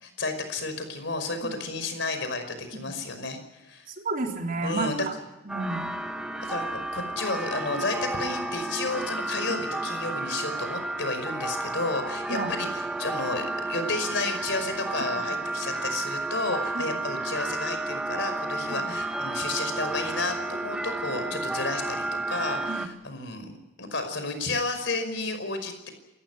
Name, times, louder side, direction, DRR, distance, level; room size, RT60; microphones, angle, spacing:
voice 1, 0.0-3.9 4.6-5.1 6.4-23.5 23.8-25.9, left 3 dB, 65° left, 8 dB, 5.4 m, -32 dB
voice 2, 3.9-5.1 5.4-5.9 12.3-12.5 16.7-17.0 18.7-18.9 22.7-22.9, right 3 dB, 45° right, 2 dB, 3.8 m, -32 dB
sound 1, 5.5-22.9, right 2 dB, 5° right, 1.6 m, -32 dB
28.0 x 15.0 x 9.3 m, 0.99 s
head